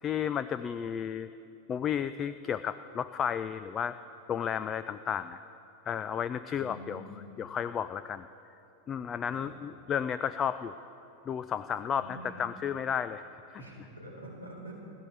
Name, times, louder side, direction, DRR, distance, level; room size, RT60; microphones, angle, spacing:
voice 1, 0.0-1.3 1.7-4.0 4.3-5.4 5.9-7.0 7.4-8.3 8.9-10.8 11.3-13.6, left 8 dB, 25° left, 14 dB, 0.4 m, -33 dB
voice 2, 6.5-7.2 9.2-9.5 12.0-12.4 13.6-14.7, equal, 80° left, -2 dB, 4.2 m, -46 dB
28.5 x 13.0 x 3.4 m, 2.8 s
figure-of-eight pair, 90°, 0 cm